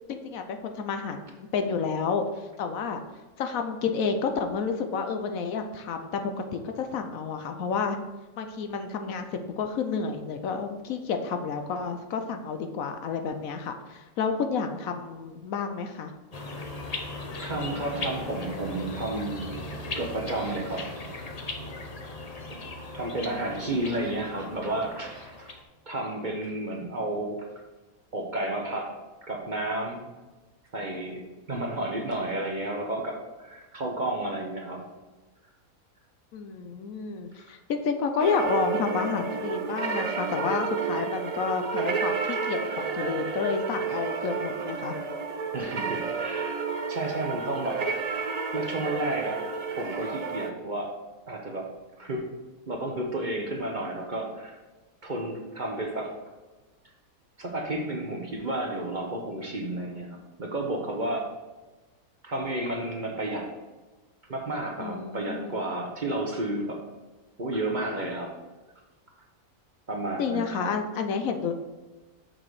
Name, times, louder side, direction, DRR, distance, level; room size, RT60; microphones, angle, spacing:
voice 1, 0.1-3.0 3.4-8.0 8.4-9.3 9.6-16.1 36.3-45.0 64.8-65.6 70.2-71.5, left 5 dB, 70° left, 6 dB, 1.1 m, -30 dB
sound 1, 16.3-25.6, left 2 dB, 35° left, 0.7 m, -38 dB
voice 2, 17.4-19.5 20.0-20.9 22.5-22.6 22.9-25.5 25.9-27.4 28.1-28.9 29.2-30.1 30.7-31.2 31.5-34.8 42.8-42.9 45.5-46.6 46.9-47.8 48.5-49.4 49.7-50.9 51.3-51.7 52.0-52.2 52.7-54.6 55.0-56.1 57.4-61.3 62.2-63.5 64.3-66.8 67.4-68.3 69.9-70.7, right 1 dB, 35° right, 1 dB, 0.9 m, -31 dB
sound 2, 38.2-50.5, right 5 dB, 75° right, 0.3 m, -31 dB
6.8 x 5.9 x 4.8 m, 1.2 s
omnidirectional pair, 1.5 m